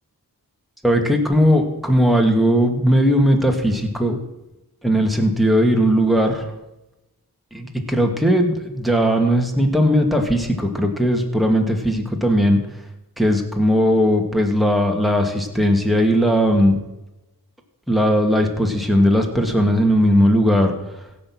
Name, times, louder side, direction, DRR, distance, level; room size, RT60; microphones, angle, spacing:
voice 1, 0.8-4.2 4.8-6.4 7.5-12.6 13.2-16.8 17.9-20.8, equal, ahead, 2 dB, 2.4 m, -18 dB
16.0 x 6.5 x 6.2 m, 0.97 s
cardioid pair, 40°, 38 cm